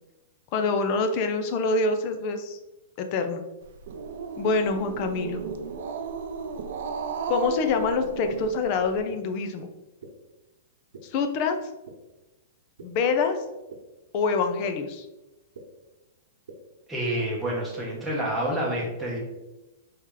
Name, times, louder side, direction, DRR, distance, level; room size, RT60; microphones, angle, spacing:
voice 1, 0.5-2.6 3.0-3.4 4.4-5.4 7.3-9.7 11.0-11.6 12.8-13.4 14.1-15.1, left 4 dB, 30° left, 7 dB, 0.4 m, -26 dB
Growling, 3.6-9.0, right 5 dB, 55° right, 0.4 m, -34 dB
sound 1, 9.1-9.2 10.0-10.1 10.9-11.0 11.9-12.0 12.8-12.9 13.7-13.8 14.6-14.7 15.5-15.6 16.5-16.6 17.4-17.5, right 6 dB, 80° right, 1.0 m, -43 dB
voice 2, 16.9-19.2, right 1 dB, ahead, -6 dB, 0.9 m, -28 dB
4.7 x 2.8 x 3.7 m, 1.0 s
supercardioid pair, 175°, 0 cm